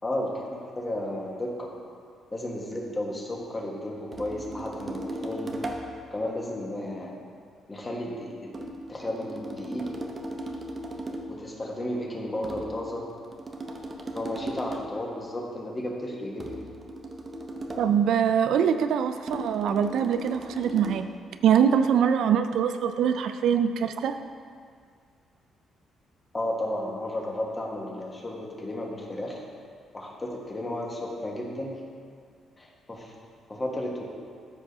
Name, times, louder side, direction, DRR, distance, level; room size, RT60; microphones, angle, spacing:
voice 1, 0.0-1.7 2.3-5.5 6.1-7.2 7.7-8.5 8.9-9.9 11.3-13.1 14.1-16.5 26.3-29.4 29.9-31.7 32.6-33.1 33.5-34.0, left 1 dB, 25° left, -1 dB, 1.4 m, -33 dB
sound 1, 4.1-6.0 8.5-11.4 12.4-15.0 16.4-18.0 19.3-21.1, right 1 dB, 35° right, 0.7 m, -37 dB
voice 2, 17.8-21.1 21.4-24.2, right 8 dB, 75° right, 9 dB, 0.3 m, -23 dB
13.0 x 4.8 x 2.7 m, 2.1 s
cardioid pair, 90°, 0 cm